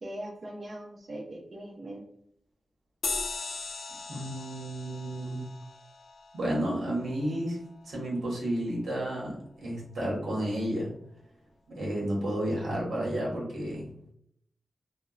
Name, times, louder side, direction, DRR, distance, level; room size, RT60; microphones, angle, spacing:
voice 1, 0.0-2.0, right 1 dB, 50° right, -5 dB, 0.6 m, -40 dB
sound 1, 3.0-7.9, left 4 dB, 80° left, 0.3 m, -39 dB
voice 2, 4.1-5.5 6.3-7.6 7.8-10.9 11.7-13.9, right 1 dB, 85° right, -4 dB, 1.0 m, -31 dB
2.8 x 2.1 x 2.3 m, 0.69 s
wide cardioid pair, 105°, 0 cm